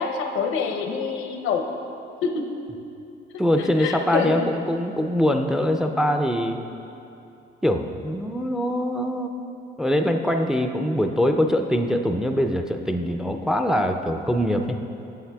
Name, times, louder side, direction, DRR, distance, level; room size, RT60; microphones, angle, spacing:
voice 1, 0.0-1.7 2.2-2.5 3.6-4.5, left 5 dB, 80° left, 3 dB, 0.6 m, -26 dB
voice 2, 3.4-6.6 7.6-9.3 9.8-14.8, equal, 5° right, 5 dB, 0.3 m, -23 dB
8.4 x 7.4 x 2.2 m, 2.7 s
cardioid pair, 90°, 20 cm